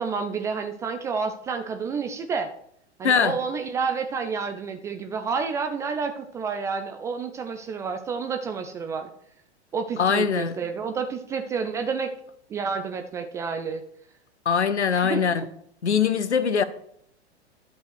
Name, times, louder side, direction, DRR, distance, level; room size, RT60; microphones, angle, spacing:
voice 1, 0.0-2.5 3.0-9.1 9.7-12.1 12.5-13.8 14.9-15.4, right 5 dB, 10° right, 0.3 m, -29 dB
voice 2, 3.0-3.4 10.0-10.5 14.4-15.5 15.8-16.6, left 6 dB, 80° left, 0.9 m, -22 dB
11.0 x 5.3 x 6.3 m
figure-of-eight pair, 100°, 34 cm